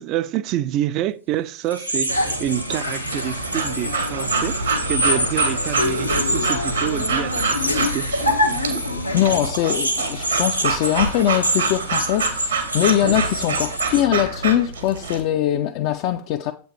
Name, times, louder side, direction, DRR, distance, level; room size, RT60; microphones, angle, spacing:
voice 1, 0.0-4.6 4.9-8.1, right 12 dB, 40° right, 0.4 m, -27 dB
sound 1, 1.7-14.0, right 1 dB, 90° right, 0.9 m, -28 dB
sound 2, 2.1-9.4, left 1 dB, 90° left, 1.0 m, -26 dB
Breathing / Dog, 3.1-15.2, right 5 dB, 70° right, 1.5 m, -27 dB
voice 2, 9.1-16.5, left 12 dB, 45° left, 0.4 m, -22 dB
7.8 x 6.7 x 3.2 m
figure-of-eight pair, 90°, 0 cm